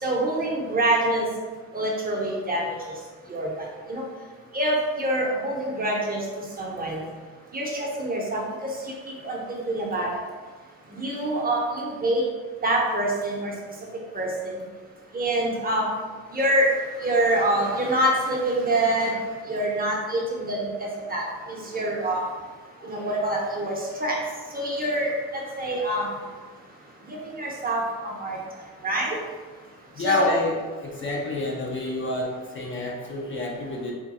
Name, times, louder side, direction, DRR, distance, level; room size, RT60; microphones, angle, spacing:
voice 1, 0.0-1.3 1.7-2.9 3.3-4.0 4.5-7.0 7.5-8.4 8.8-8.9 9.2-10.2 10.9-12.2 12.6-13.5 14.1-14.6 15.1-15.9 16.3-16.7 17.0-19.2 19.5-22.2 22.8-24.2 24.5-26.1 27.0-28.4 28.8-29.2 30.0-30.3 31.0-31.1, right 1 dB, 25° right, -2 dB, 0.9 m, -26 dB
voice 2, 30.0-30.5 30.8-33.9, left 2 dB, 35° left, -2 dB, 0.6 m, -28 dB
3.6 x 2.2 x 4.1 m, 1.4 s
cardioid pair, 105°, 36 cm